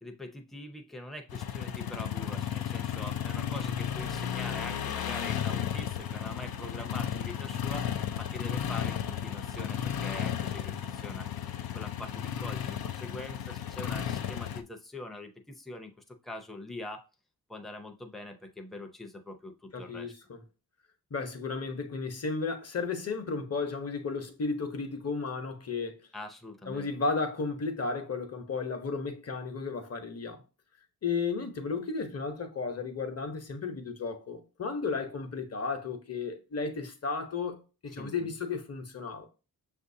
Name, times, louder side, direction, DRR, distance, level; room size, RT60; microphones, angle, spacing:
voice 1, 0.0-7.9 8.2-11.3 11.7-17.0 17.5-20.1 26.1-26.9 38.0-38.4, left 1 dB, ahead, 0.6 m, -43 dB
sound 1, 1.3-14.6, left 9 dB, 65° left, 0.5 m, -34 dB
voice 2, 19.7-20.4 21.1-26.1 26.7-30.4 31.0-37.6 37.8-39.3, left 4 dB, 40° left, 0.9 m, -34 dB
6.2 x 2.6 x 2.7 m
cardioid pair, 65°, 39 cm